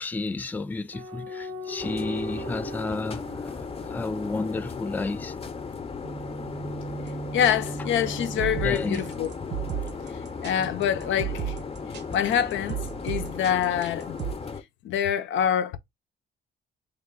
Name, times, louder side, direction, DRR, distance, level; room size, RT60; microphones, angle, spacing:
voice 1, 0.0-5.4 8.6-9.0, left 3 dB, 10° left, 0.3 m, -32 dB
sound 1, 0.9-4.6 6.0-9.8 10.6-11.8, right 2 dB, 75° right, 1.1 m, -39 dB
sound 2, 1.8-14.6, left 5 dB, 30° left, 0.7 m, -36 dB
sound 3, 7.1-7.2 7.4-7.5 8.0-14.3, right 9 dB, 60° right, 0.8 m, -33 dB
voice 2, 7.3-9.3 10.1-11.5 12.1-14.2 14.8-15.8, left 9 dB, 75° left, 0.6 m, -26 dB
3.5 x 2.3 x 3.7 m
cardioid pair, 90°, 20 cm